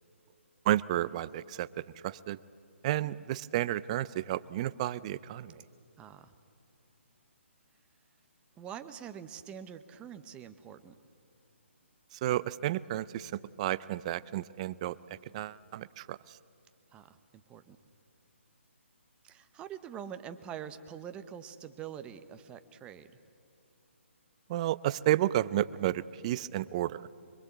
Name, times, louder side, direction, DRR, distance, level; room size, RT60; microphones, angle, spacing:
voice 1, 0.7-1.7 2.0-2.4 2.8-5.5 12.2-13.3 13.6-15.0 15.3-16.2 24.5-27.1, right 14 dB, 30° right, 18 dB, 0.5 m, -31 dB
voice 2, 6.0-6.3 8.6-10.9 16.9-17.1 17.5-17.8 19.2-23.1, right 9 dB, 15° right, 10 dB, 1.0 m, -45 dB
24.5 x 22.5 x 8.3 m, 2.7 s
hypercardioid pair, 150°, 7 cm